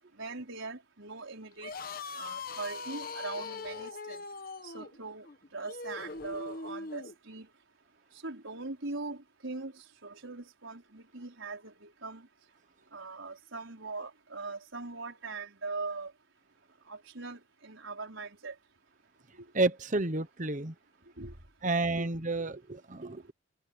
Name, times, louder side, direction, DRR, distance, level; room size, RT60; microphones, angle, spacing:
voice 1, 0.2-1.7 2.2-4.2 4.7-5.3 5.5-7.5 8.2-9.2 9.4-9.7 10.0-12.2 12.9-16.1 16.9-18.5 21.2-21.3 21.9-22.1, right 3 dB, 75° right, 4.8 m, -41 dB
sound 1, 1.5-7.1, left 4 dB, 45° left, 1.1 m, -41 dB
voice 2, 19.5-20.7 21.6-23.3, right 2 dB, 40° right, 1.1 m, -30 dB
head